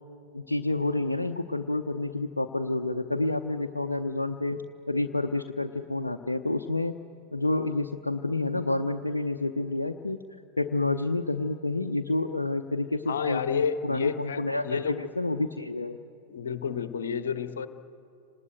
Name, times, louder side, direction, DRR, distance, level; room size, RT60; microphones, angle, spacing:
voice 1, 0.3-4.6 4.9-6.9 7.3-10.2 10.6-13.4 13.8-16.0, left 2 dB, 80° left, 5 dB, 0.8 m, -29 dB
voice 2, 13.1-15.0 16.3-17.7, left 6 dB, 65° left, 11 dB, 1.2 m, -30 dB
30.0 x 19.5 x 9.2 m, 2.7 s
figure-of-eight pair, 90°, 0 cm